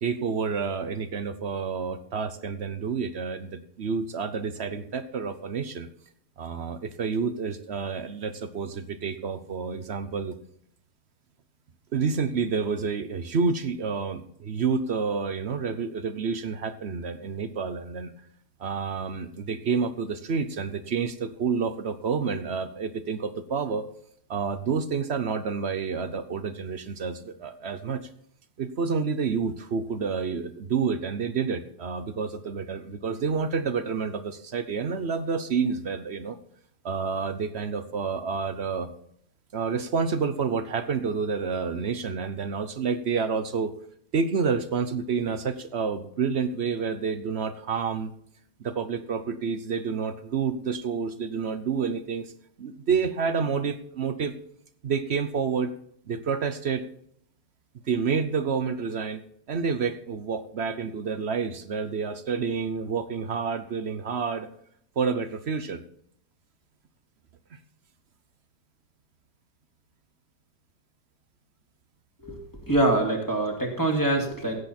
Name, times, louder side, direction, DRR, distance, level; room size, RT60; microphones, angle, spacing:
voice 1, 0.0-5.9 6.4-10.3 11.9-18.1 18.6-23.8 24.3-28.0 28.6-36.4 36.8-38.9 39.5-43.7 44.1-48.1 48.6-52.3 52.6-54.3 54.8-55.7 56.1-56.9 57.9-59.2 59.5-64.5 65.0-65.8, right 5 dB, 50° right, 11 dB, 0.9 m, -29 dB
voice 2, 72.2-74.6, right 2 dB, 10° left, 0 dB, 2.5 m, -25 dB
16.0 x 8.2 x 4.3 m, 0.66 s
omnidirectional pair, 1.7 m